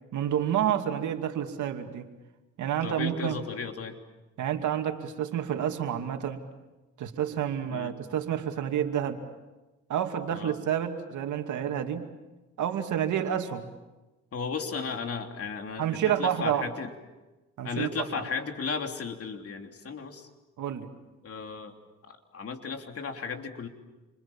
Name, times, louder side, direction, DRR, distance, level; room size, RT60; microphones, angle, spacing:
voice 1, 0.1-2.1 2.6-3.4 4.4-6.4 7.0-9.2 9.9-12.1 12.6-13.7 15.8-16.7 17.6-18.2 20.6-20.9, right 10 dB, 75° right, 5 dB, 2.6 m, -29 dB
voice 2, 2.8-3.9 7.7-8.0 10.3-10.5 14.3-16.9 17.6-20.3 21.2-21.7 22.0-23.7, left 5 dB, 50° left, 4 dB, 3.3 m, -35 dB
28.0 x 26.5 x 7.3 m, 1.1 s
cardioid pair, 90°, 30 cm